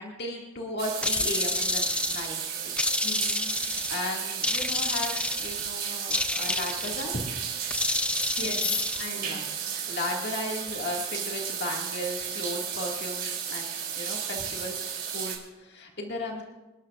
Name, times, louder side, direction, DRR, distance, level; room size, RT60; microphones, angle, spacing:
voice 1, 0.0-2.3 2.6-2.7 3.6-7.2 9.2-14.8 15.1-16.4, left 1 dB, 60° left, -1 dB, 2.0 m, -35 dB
sound 1, 0.8-15.4, right 8 dB, 50° right, 3.3 m, -34 dB
sound 2, 1.0-2.3 2.8-4.0 4.4-5.7 6.1-7.1 7.7-9.0, left 2 dB, 5° left, 0.4 m, -29 dB
voice 2, 3.0-3.5 5.6-5.7 8.1-9.5 16.1-16.2, left 5 dB, 80° left, 0 dB, 2.2 m, -36 dB
28.0 x 12.0 x 2.5 m, 1.1 s
head